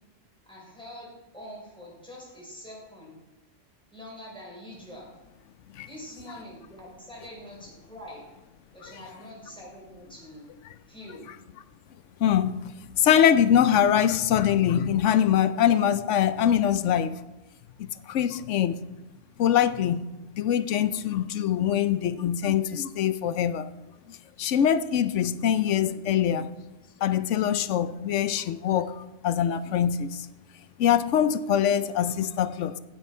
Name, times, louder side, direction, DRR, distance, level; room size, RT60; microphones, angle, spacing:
voice 1, 0.5-3.2 3.9-5.1 5.9-8.2 8.7-10.5 10.9-11.3, left 1 dB, 5° left, -3 dB, 4.4 m, -44 dB
voice 2, 12.2-12.6 12.9-17.2 18.1-18.8 19.4-20.1 20.3-23.7 24.4-26.5 27.0-30.3 30.8-32.8, left 9 dB, 75° left, 13 dB, 0.9 m, -23 dB
16.5 x 8.0 x 4.4 m, 1.0 s
omnidirectional pair, 1.3 m